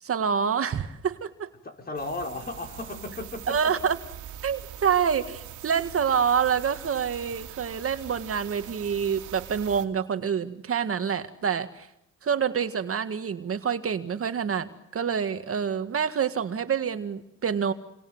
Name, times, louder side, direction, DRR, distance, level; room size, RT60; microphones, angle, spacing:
voice 1, 0.0-1.5 3.5-4.0 4.4-11.9 12.2-17.7, right 7 dB, 50° right, 8 dB, 1.9 m, -27 dB
voice 2, 1.6-3.7, left 2 dB, 30° left, 3 dB, 5.3 m, -35 dB
sound 1, 2.0-9.9, right 11 dB, 90° right, 2.6 m, -43 dB
29.5 x 24.0 x 8.0 m, 0.81 s
cardioid pair, 90°, 30 cm